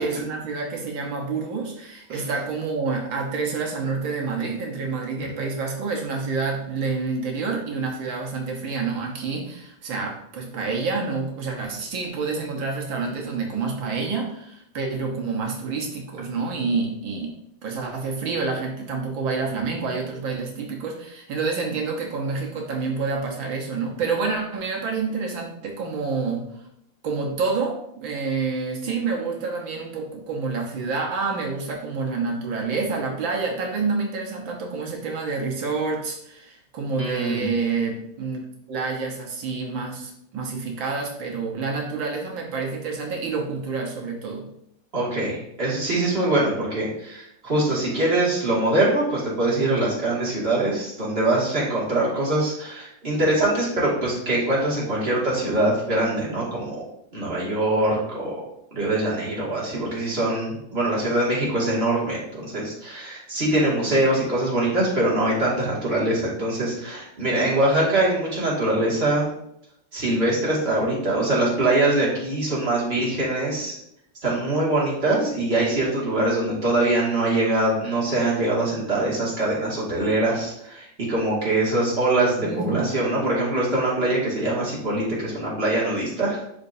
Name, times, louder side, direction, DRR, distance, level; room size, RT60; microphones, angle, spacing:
voice 1, 0.0-17.3 17.6-26.5 27.0-38.4 38.7-44.5 82.4-82.9, right 4 dB, 85° right, 0 dB, 1.9 m, -28 dB
voice 2, 37.0-37.5 44.9-56.8 57.1-58.3 58.7-69.3 69.9-73.7 74.2-86.4, right 2 dB, 30° right, -6 dB, 2.4 m, -23 dB
11.0 x 4.4 x 2.7 m, 0.74 s
omnidirectional pair, 2.0 m